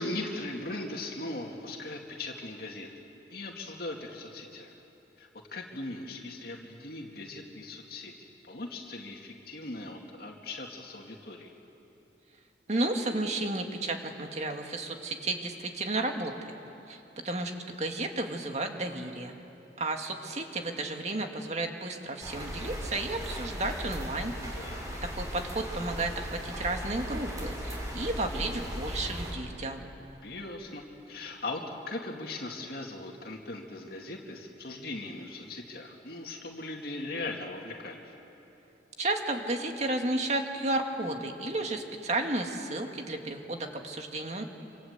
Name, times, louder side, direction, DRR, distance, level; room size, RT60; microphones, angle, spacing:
voice 1, 0.0-2.9 3.3-4.7 5.2-8.1 8.5-11.5 24.5-25.0 30.2-38.0, left 2 dB, 60° left, 0 dB, 2.3 m, -39 dB
voice 2, 12.7-16.3 16.9-17.5 17.8-19.3 19.8-24.3 25.0-29.9 39.0-44.4, right 2 dB, 40° right, 4 dB, 2.1 m, -32 dB
sound 1, 22.2-29.3, equal, 20° right, 4.8 m, -37 dB
27.0 x 26.5 x 8.2 m, 2.9 s
head